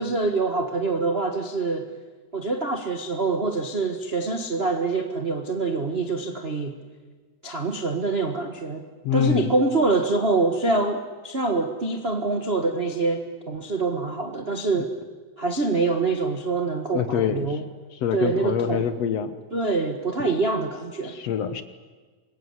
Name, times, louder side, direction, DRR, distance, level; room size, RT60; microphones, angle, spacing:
voice 1, 0.0-1.9 2.3-6.8 7.4-8.8 9.1-14.9 15.4-17.7 18.1-18.8 19.5-21.2, right 3 dB, 80° right, 5 dB, 0.5 m, -25 dB
voice 2, 9.0-9.5 16.9-17.5 18.0-19.4 21.0-21.6, left 8 dB, 60° left, 11 dB, 1.9 m, -25 dB
25.5 x 22.0 x 9.7 m, 1.4 s
omnidirectional pair, 3.9 m